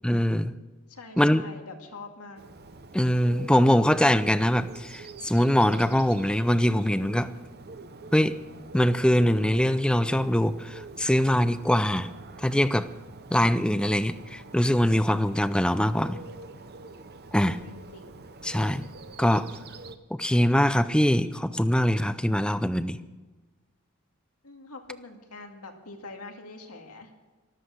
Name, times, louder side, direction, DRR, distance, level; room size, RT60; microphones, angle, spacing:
voice 1, 0.0-0.5 1.2-1.4 2.9-7.3 8.1-8.4 8.7-12.1 12.4-12.9 13.3-16.2 17.3-17.6 18.4-18.9 19.2-19.5 20.1-23.0, equal, 5° left, 13 dB, 0.5 m, -23 dB
voice 2, 0.9-2.4 17.4-18.2 24.4-27.1, left 3 dB, 90° left, 4 dB, 2.2 m, -44 dB
Bird, 2.4-20.0, right 3 dB, 45° right, 0.9 m, -45 dB
14.0 x 13.0 x 6.5 m, 1.2 s
head